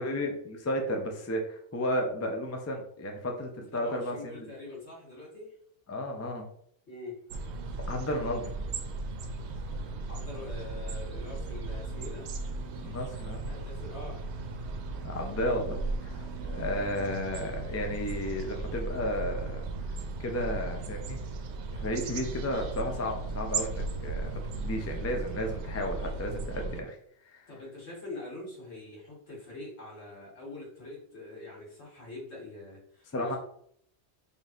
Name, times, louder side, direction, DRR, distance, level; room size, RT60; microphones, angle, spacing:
voice 1, 0.0-4.5 5.9-6.5 7.9-8.4 12.8-13.4 15.0-15.8 16.0-19.6 20.2-21.2 21.7-27.0 27.2-27.5 33.1-33.4, left 1 dB, 25° left, 3 dB, 0.3 m, -33 dB
voice 2, 3.7-5.6 6.9-7.2 10.1-12.3 13.5-14.2 27.5-33.4, left 2 dB, 80° left, -4 dB, 1.8 m, -44 dB
sound 1, 7.3-26.8, right 3 dB, 80° right, 0.9 m, -36 dB
4.2 x 3.4 x 2.4 m, 0.65 s
omnidirectional pair, 1.1 m